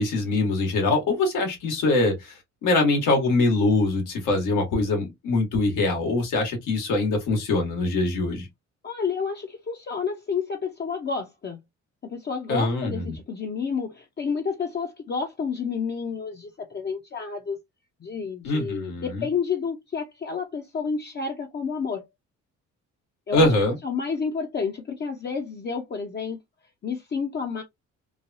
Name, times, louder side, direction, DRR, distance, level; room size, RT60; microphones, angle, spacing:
voice 1, 0.0-8.5 12.5-13.1 18.4-19.2 23.3-23.8, left 2 dB, 85° left, 1.5 m, -23 dB
voice 2, 8.8-11.6 12.0-17.6 18.0-22.0 23.3-23.5 23.8-26.4 26.8-27.6, left 5 dB, 35° left, 0.6 m, -30 dB
3.2 x 2.2 x 2.6 m
cardioid pair, 90°, 30 cm